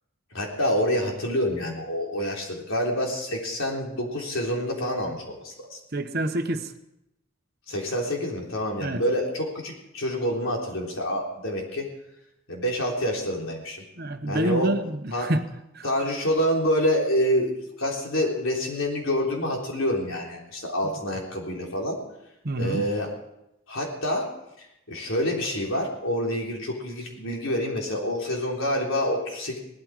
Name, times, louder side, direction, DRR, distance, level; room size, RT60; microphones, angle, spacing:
voice 1, 0.3-5.8 7.7-11.9 12.5-13.8 14.3-14.7 15.1-15.3 15.8-22.0 22.6-23.1 23.7-24.3 24.6-29.6, equal, 80° left, -1 dB, 3.7 m, -27 dB
voice 2, 5.9-6.7 8.8-9.0 14.0-15.4 15.7-15.9 22.4-22.8, right 1 dB, 45° right, 8 dB, 0.9 m, -27 dB
18.0 x 13.0 x 4.9 m, 0.85 s
head